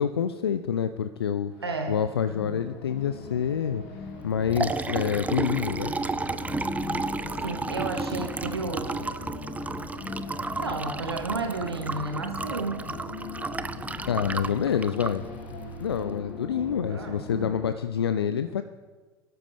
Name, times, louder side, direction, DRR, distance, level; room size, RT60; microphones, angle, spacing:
voice 1, 0.0-1.5 1.9-3.8 4.2-5.9 14.1-15.2 15.8-18.6, left 8 dB, 80° left, 11 dB, 0.5 m, -27 dB
sound 1, 1.5-17.7, left 4 dB, 50° left, 2.5 m, -40 dB
voice 2, 1.6-2.0 7.4-9.1 10.6-12.9 16.9-17.2, right 3 dB, 85° right, 4 dB, 1.1 m, -32 dB
Liquid, 4.2-16.1, right 3 dB, 10° right, 0.6 m, -33 dB
24.0 x 12.5 x 3.4 m, 1.3 s
figure-of-eight pair, 80°, 13 cm